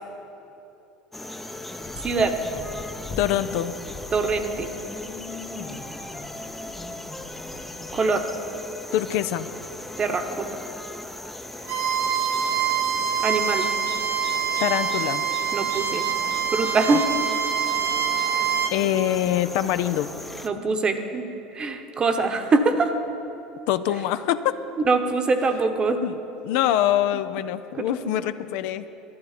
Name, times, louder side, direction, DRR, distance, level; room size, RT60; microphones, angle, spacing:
sound 1, 1.1-20.5, left 1 dB, 5° left, 0.6 m, -38 dB
sound 2, 1.7-3.3 3.7-7.9, left 4 dB, 35° left, 1.6 m, -40 dB
voice 1, 2.0-2.3 4.1-4.7 7.9-8.2 10.0-10.5 13.2-13.6 15.5-16.0 16.5-17.1 20.4-21.3 21.5-22.9 24.8-26.0 27.8-28.0, right 3 dB, 30° right, 8 dB, 1.0 m, -23 dB
voice 2, 3.2-3.7 8.9-9.5 14.6-15.2 16.9-17.0 18.7-20.1 23.7-24.6 26.0-26.2 26.4-28.9, left 12 dB, 65° left, 12 dB, 0.4 m, -24 dB
Bowed string instrument, 11.6-18.7, right 8 dB, 55° right, 0.9 m, -25 dB
12.0 x 11.5 x 4.2 m, 3.0 s
hypercardioid pair, 75°, 3 cm